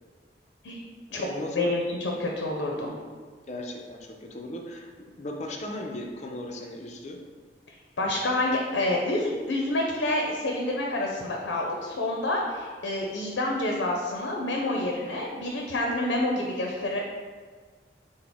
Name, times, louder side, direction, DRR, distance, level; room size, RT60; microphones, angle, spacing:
voice 1, 1.1-1.8 3.5-7.2, left 1 dB, 40° left, 1 dB, 0.5 m, -37 dB
voice 2, 2.2-2.9 8.0-17.0, left 2 dB, 85° left, 0 dB, 0.5 m, -28 dB
5.9 x 2.0 x 3.5 m, 1.5 s
head